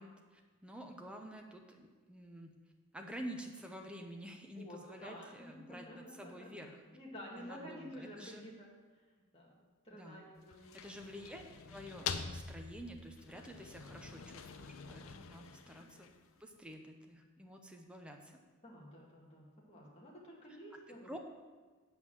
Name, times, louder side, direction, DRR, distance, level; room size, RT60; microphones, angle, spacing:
voice 1, 0.0-2.5 2.9-6.8 7.4-8.5 9.9-10.3 10.7-16.1 16.4-18.3 21.0-21.2, equal, 5° right, 2 dB, 0.7 m, -49 dB
voice 2, 4.6-6.5 6.9-8.7 9.3-9.5 9.8-10.8 15.7-15.9 18.6-21.1, equal, 25° left, -3 dB, 1.8 m, -51 dB
sound 1, 10.4-16.4, left 6 dB, 65° left, 0.5 m, -46 dB
8.1 x 5.5 x 6.1 m, 1.4 s
head